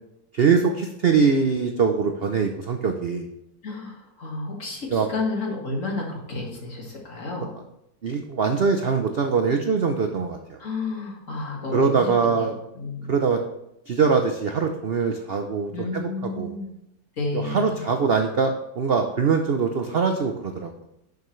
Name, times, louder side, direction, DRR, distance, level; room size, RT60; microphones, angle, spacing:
voice 1, 0.3-3.2 4.9-5.1 8.0-10.6 11.7-12.5 13.1-13.4 13.9-16.1 16.4-16.5 17.3-20.7, right 5 dB, 75° right, 5 dB, 0.5 m, -22 dB
voice 2, 3.6-7.5 10.6-13.1 15.7-16.7 17.2-17.7, left 3 dB, 45° left, -1 dB, 2.2 m, -31 dB
11.0 x 7.0 x 3.2 m, 0.84 s
omnidirectional pair, 1.9 m